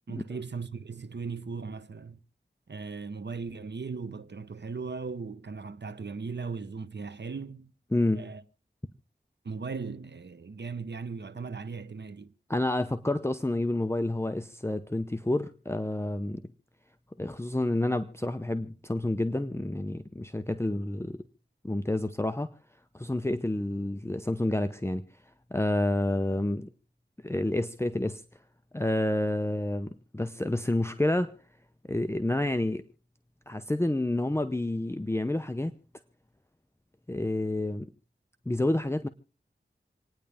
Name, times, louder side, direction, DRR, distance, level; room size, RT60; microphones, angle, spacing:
voice 1, 0.1-2.2 2.7-7.7 8.1-8.4 9.4-12.3, right 4 dB, 70° right, 0.9 m, -38 dB
voice 2, 7.9-8.2 12.5-16.4 17.2-21.2 21.6-22.5 22.9-25.0 25.5-26.7 27.2-28.2 28.7-31.4 31.9-32.8 33.5-35.7 37.1-37.9 38.5-39.1, left 1 dB, 15° left, 0.8 m, -29 dB
28.0 x 9.9 x 3.5 m
wide cardioid pair, 60°, 19 cm